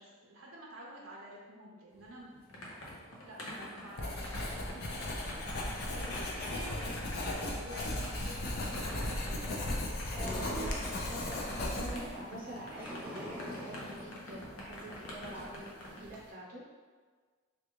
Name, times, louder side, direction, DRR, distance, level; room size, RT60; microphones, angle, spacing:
voice 1, 0.0-2.4 3.2-4.8 5.3-5.5 5.9-7.0 7.2-9.2, right 1 dB, 90° right, -3 dB, 0.6 m, -49 dB
sound 1, 2.0-16.0, equal, 90° left, 0.7 m, -47 dB
Writing, 4.0-12.2, left 1 dB, 50° left, 0.5 m, -36 dB
sound 2, 8.9-16.3, equal, 10° right, 0.5 m, -46 dB
voice 2, 10.1-16.6, right 1 dB, 45° right, -5 dB, 0.8 m, -46 dB
3.4 x 2.5 x 3.0 m, 1.5 s
head